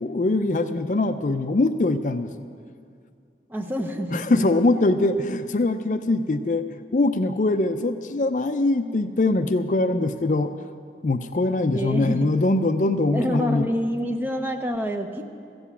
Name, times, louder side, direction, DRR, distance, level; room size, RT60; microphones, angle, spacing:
voice 1, 0.0-2.3 4.1-6.6 6.9-10.5 11.0-13.7, left 2 dB, 45° left, 9 dB, 0.4 m, -22 dB
voice 2, 3.5-4.8 11.7-12.3 13.1-15.2, equal, 10° right, 5 dB, 0.7 m, -27 dB
14.5 x 7.9 x 8.3 m, 2.3 s
head